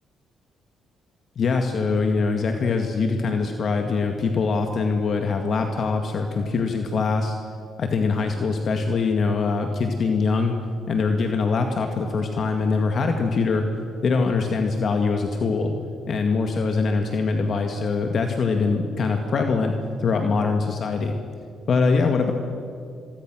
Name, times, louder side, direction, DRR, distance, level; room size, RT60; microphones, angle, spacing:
voice 1, 1.4-7.3 7.8-10.6 10.9-13.7 14.0-15.7 16.1-19.7 20.0-21.2 21.7-22.3, left 4 dB, 55° left, 4 dB, 2.0 m, -23 dB
27.5 x 23.0 x 6.3 m, 2.3 s
cardioid pair, 90°, 0 cm